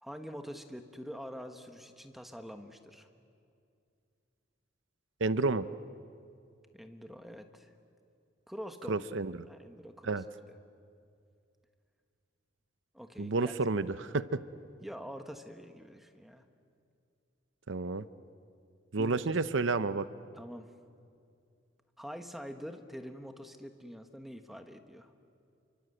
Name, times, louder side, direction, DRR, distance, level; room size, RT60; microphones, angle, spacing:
voice 1, 0.0-3.1 6.7-7.7 8.5-9.1 9.5-10.2 12.9-13.5 14.8-16.5 19.0-19.2 20.3-20.7 22.0-25.1, equal, ahead, 6 dB, 1.3 m, -45 dB
voice 2, 5.2-5.7 8.9-9.3 10.0-10.2 13.2-14.4 17.7-18.1 18.9-20.1, right 3 dB, 70° right, 14 dB, 0.7 m, -30 dB
29.0 x 24.5 x 7.9 m, 2.4 s
head